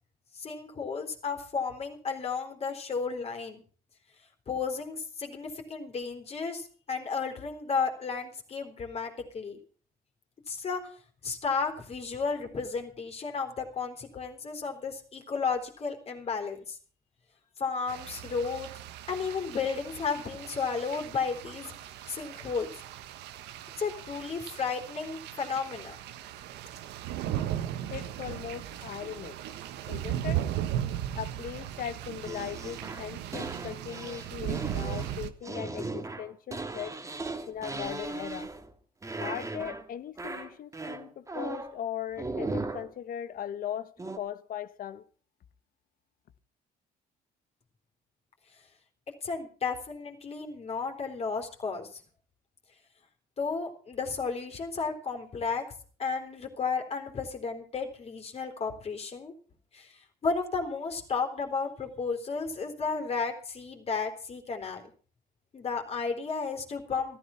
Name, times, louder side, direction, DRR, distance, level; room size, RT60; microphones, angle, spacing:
voice 1, 0.3-3.6 4.5-9.6 10.5-10.8 11.2-16.8 17.6-18.7 19.1-21.7 22.1-22.7 23.8-26.0 49.2-52.0 53.4-55.6 56.0-59.3 59.7-64.8 65.5-67.2, left 5 dB, 35° left, 3.9 m, -33 dB
sound 1, 17.9-35.3, right 11 dB, 85° right, 1.3 m, -37 dB
voice 2, 27.9-29.4 29.8-30.4 31.1-37.0 37.5-38.5 39.2-45.0, left 10 dB, 55° left, 1.2 m, -39 dB
sound 2, 32.2-38.7 39.0-39.9 40.2-41.8 42.2-42.9 44.0-44.2, right 3 dB, 20° right, 2.0 m, -37 dB
14.5 x 13.5 x 5.8 m
cardioid pair, 110°, 17 cm